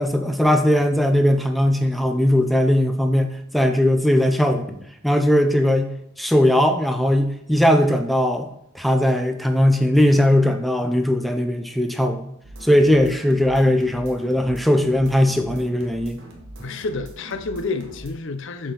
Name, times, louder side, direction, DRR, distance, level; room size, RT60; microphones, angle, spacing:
voice 1, 0.0-5.9 6.2-8.5 8.7-12.3 12.6-16.2, left 1 dB, ahead, 0.4 m, -19 dB
sound 1, 12.4-18.1, right 1 dB, 55° right, 1.3 m, -41 dB
voice 2, 16.6-18.7, left 3 dB, 55° left, 0.5 m, -29 dB
7.1 x 3.8 x 5.3 m
head